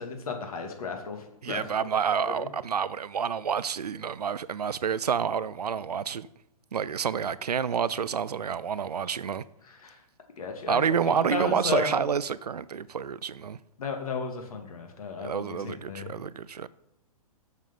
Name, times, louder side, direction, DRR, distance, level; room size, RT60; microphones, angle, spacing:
voice 1, 0.0-1.6 2.2-2.5 9.8-10.0 10.4-10.9 11.3-12.1 13.8-16.1, left 5 dB, 70° left, 2.2 m, -34 dB
voice 2, 1.4-6.3 6.7-9.4 10.7-13.6 15.2-16.7, right 7 dB, 85° right, 0.5 m, -29 dB
7.4 x 6.4 x 5.8 m
hypercardioid pair, 125°, 20 cm